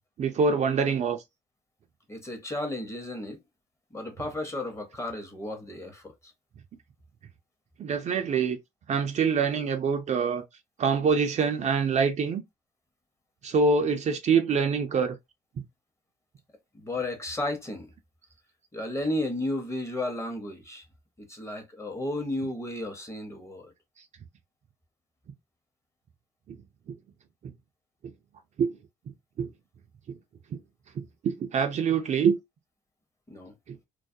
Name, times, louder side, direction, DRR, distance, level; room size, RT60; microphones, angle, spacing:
voice 1, 0.2-1.2 7.8-8.6 8.9-10.4 10.8-12.4 13.4-15.2 26.5-26.6 26.9-27.0 27.4-27.5 28.6-28.7 29.4-29.5 30.1-30.2 31.0-32.4 33.7-33.8, right 5 dB, 45° right, 0.5 m, -25 dB
voice 2, 2.1-3.4 3.9-6.3 16.7-17.9 18.7-20.8 21.2-23.7 33.3-33.5, left 1 dB, 15° left, 0.8 m, -33 dB
2.3 x 2.1 x 2.6 m
supercardioid pair, 85°, 17 cm